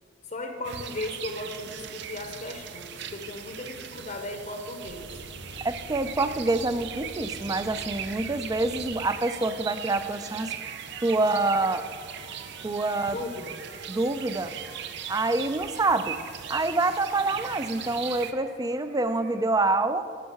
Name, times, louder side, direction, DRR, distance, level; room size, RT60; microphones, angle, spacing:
voice 1, 0.3-5.1 13.1-13.6, left 2 dB, 40° left, 5 dB, 0.8 m, -36 dB
sound 1, 0.6-18.3, right 8 dB, 65° right, 0.6 m, -39 dB
sound 2, 4.8-9.1 10.0-10.1, left 1 dB, 85° left, 0.9 m, -45 dB
voice 2, 5.6-10.5 11.0-11.8 12.6-13.2 13.9-14.5 15.1-16.2 16.5-20.0, right 2 dB, 20° right, 11 dB, 0.4 m, -26 dB
sound 3, 9.7-19.5, right 2 dB, 85° right, 2.1 m, -50 dB
10.0 x 5.5 x 6.9 m, 2.3 s
head